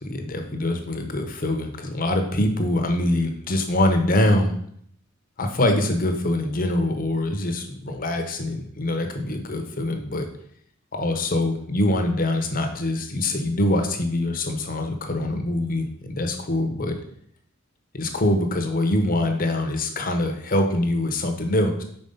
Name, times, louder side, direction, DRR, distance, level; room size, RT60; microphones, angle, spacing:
voice 1, 0.0-4.6 5.4-10.3 10.9-17.0 17.9-21.8, left 1 dB, 45° left, 4 dB, 1.0 m, -24 dB
5.4 x 4.2 x 5.6 m, 0.66 s
head